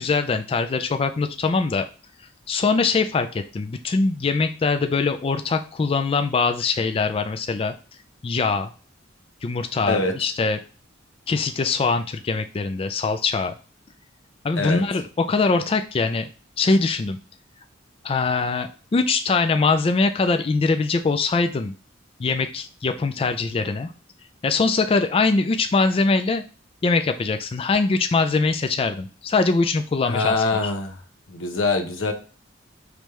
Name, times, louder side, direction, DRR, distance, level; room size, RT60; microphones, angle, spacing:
voice 1, 0.0-1.9 2.5-7.7 8.2-8.7 9.4-10.6 11.3-13.5 14.4-16.3 16.6-17.2 18.0-21.7 22.2-23.9 24.4-26.4 26.8-30.4 30.6-30.7, left 4 dB, 30° left, 8 dB, 0.3 m, -22 dB
voice 2, 30.0-30.9 31.3-32.1, left 3 dB, 90° left, 4 dB, 1.0 m, -23 dB
5.1 x 3.2 x 3.1 m, 0.36 s
head